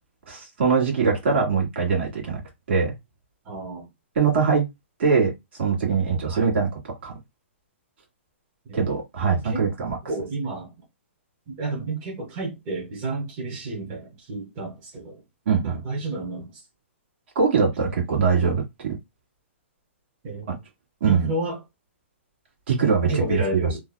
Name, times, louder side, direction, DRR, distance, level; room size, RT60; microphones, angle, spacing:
voice 1, 0.3-2.4 2.7-2.9 4.2-4.6 5.0-5.3 5.6-7.1 8.7-10.0 15.5-15.8 17.4-18.9 20.5-20.6 21.0-21.3 22.7-23.4, right 5 dB, 60° right, 1.8 m, -22 dB
voice 2, 3.4-3.9 6.3-6.5 8.7-8.8 9.3-9.6 10.1-10.7 11.5-15.2 15.6-16.6 20.2-20.5 21.0-21.6 23.0-23.8, right 2 dB, 30° right, 1.2 m, -31 dB
3.2 x 2.3 x 2.3 m
hypercardioid pair, 150°, 7 cm